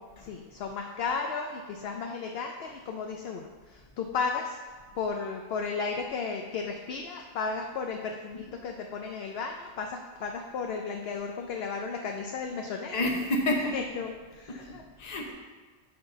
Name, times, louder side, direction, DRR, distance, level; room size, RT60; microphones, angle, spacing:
voice 1, 0.0-4.6 4.9-13.0 13.7-14.8, left 5 dB, 65° left, 3 dB, 0.7 m, -34 dB
voice 2, 12.9-13.8 14.5-15.3, left 1 dB, 40° left, 1 dB, 0.9 m, -29 dB
6.6 x 4.0 x 5.4 m, 1.4 s
omnidirectional pair, 1.2 m